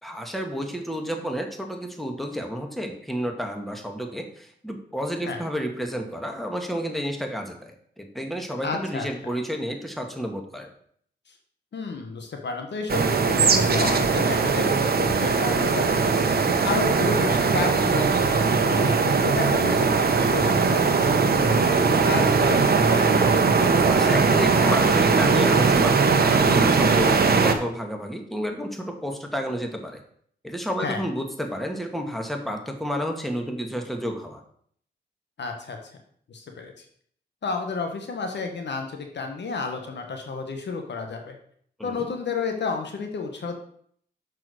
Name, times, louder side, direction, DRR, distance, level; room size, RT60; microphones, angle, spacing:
voice 1, 0.0-7.7 8.0-10.7 23.9-30.0 30.4-34.4 41.8-42.1, equal, ahead, 3 dB, 1.8 m, -31 dB
voice 2, 8.6-9.1 11.3-11.4 11.7-23.2 30.8-31.0 35.4-35.8 36.3-36.8 37.4-41.3 41.8-43.5, left 4 dB, 70° left, 4 dB, 1.2 m, -31 dB
sound 1, 12.9-27.5, right 4 dB, 55° right, 1.0 m, -20 dB
6.1 x 4.8 x 6.3 m, 0.63 s
cardioid pair, 45°, 19 cm